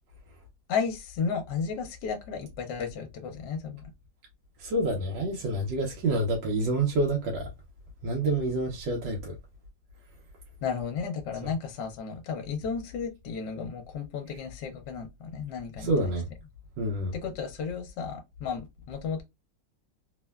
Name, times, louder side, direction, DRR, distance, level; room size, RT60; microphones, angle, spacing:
voice 1, 0.7-3.8 10.6-16.1 17.1-19.2, left 6 dB, 75° left, 1.2 m, -33 dB
voice 2, 4.6-7.5 8.0-9.3 11.4-11.5 15.8-16.3 16.8-17.1, right 2 dB, 85° right, 1.4 m, -28 dB
3.3 x 2.1 x 2.2 m
omnidirectional pair, 1.9 m